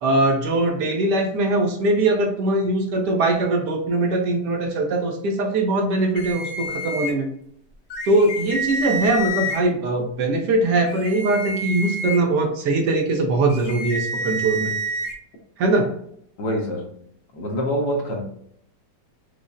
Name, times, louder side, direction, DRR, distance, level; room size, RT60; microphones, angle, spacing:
voice 1, 0.0-7.3 8.1-14.7 15.6-15.9, right 2 dB, 75° right, 2 dB, 1.3 m, -21 dB
sound 1, 6.2-7.1 7.9-9.6 10.9-12.2 13.5-15.1, right 1 dB, 55° left, 0.8 m, -28 dB
voice 2, 16.4-16.9 17.3-18.2, equal, 70° left, 1 dB, 1.4 m, -25 dB
5.3 x 2.1 x 2.4 m, 0.67 s
omnidirectional pair, 1.9 m